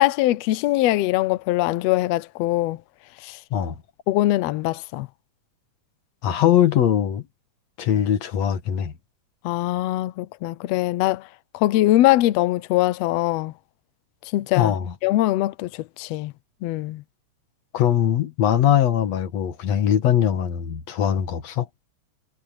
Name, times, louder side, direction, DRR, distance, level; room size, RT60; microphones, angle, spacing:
voice 1, 0.0-2.8 3.2-3.4 4.1-5.1 9.4-11.2 11.5-13.5 14.3-14.8 15.0-15.7 16.0-16.3 16.6-17.0, left 16 dB, 80° left, 1.5 m, -22 dB
voice 2, 6.2-7.2 7.8-8.9 14.6-14.9 17.7-21.7, left 10 dB, 60° left, 2.6 m, -21 dB
omnidirectional pair, 3.6 m